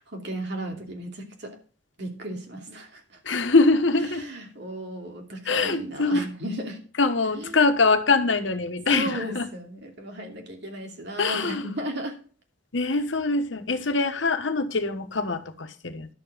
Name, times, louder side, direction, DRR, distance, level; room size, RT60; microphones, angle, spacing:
voice 1, 0.0-1.6 2.0-3.2 3.9-6.8 7.2-7.8 8.9-12.2, right 1 dB, 65° right, 2.7 m, -35 dB
voice 2, 3.3-4.3 5.5-6.2 7.0-9.1 9.3-9.5 11.2-11.6 12.7-16.1, left 3 dB, 85° left, 1.2 m, -23 dB
11.5 x 7.0 x 5.0 m
head